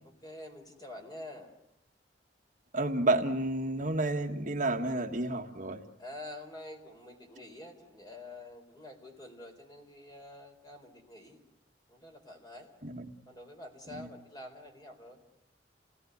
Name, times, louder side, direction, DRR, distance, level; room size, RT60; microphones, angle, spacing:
voice 1, 0.0-1.5 6.0-11.4 11.9-12.7 13.3-15.2, left 1 dB, 25° left, 3 dB, 4.2 m, -47 dB
voice 2, 2.7-5.8 12.8-13.0, right 2 dB, 45° right, 4 dB, 1.6 m, -30 dB
29.0 x 18.5 x 9.5 m, 0.82 s
head